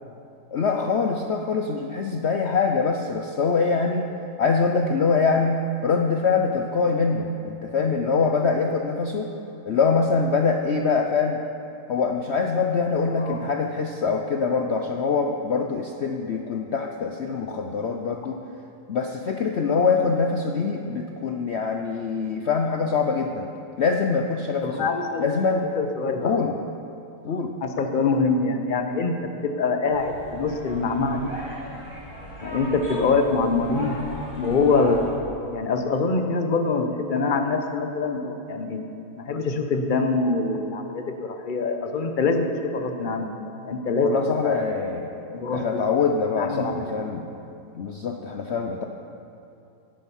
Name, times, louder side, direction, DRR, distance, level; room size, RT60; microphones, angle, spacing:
voice 1, 0.5-4.1 4.4-9.3 9.6-11.4 11.9-18.4 18.9-23.5 23.8-24.7 25.2-25.7 26.2-26.5 27.2-27.5 38.2-38.3 44.0-47.3 47.8-48.8, left 5 dB, 70° left, 3 dB, 0.6 m, -24 dB
voice 2, 13.1-13.5 24.6-25.3 25.7-26.3 27.6-29.1 29.4-31.3 32.4-34.0 34.4-35.1 35.5-38.8 39.1-43.3 43.6-44.6 45.3-45.8 46.4-46.9, left 4 dB, 40° left, 5 dB, 0.8 m, -24 dB
sound 1, 29.9-35.1, equal, 15° left, 3.4 m, -38 dB
17.0 x 8.9 x 5.6 m, 2.7 s
omnidirectional pair, 2.0 m